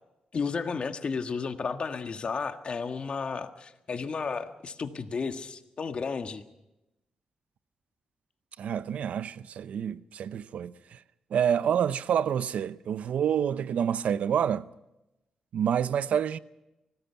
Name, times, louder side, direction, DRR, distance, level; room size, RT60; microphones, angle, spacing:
voice 1, 0.3-6.4, left 5 dB, 50° left, 1.6 m, -33 dB
voice 2, 8.6-11.0 11.3-14.7 15.5-16.4, right 8 dB, 80° right, 0.7 m, -28 dB
24.5 x 19.0 x 5.8 m
cardioid pair, 85°, 2 cm